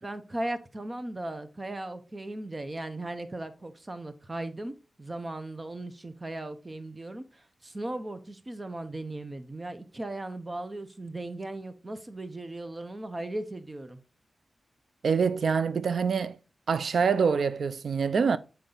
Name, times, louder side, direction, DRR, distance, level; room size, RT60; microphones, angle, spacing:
voice 1, 0.0-14.0, right 1 dB, 25° right, 0.7 m, -37 dB
voice 2, 15.0-16.4 16.7-18.4, right 5 dB, 75° right, 0.4 m, -25 dB
7.1 x 4.4 x 3.8 m
wide cardioid pair, 120°, 0 cm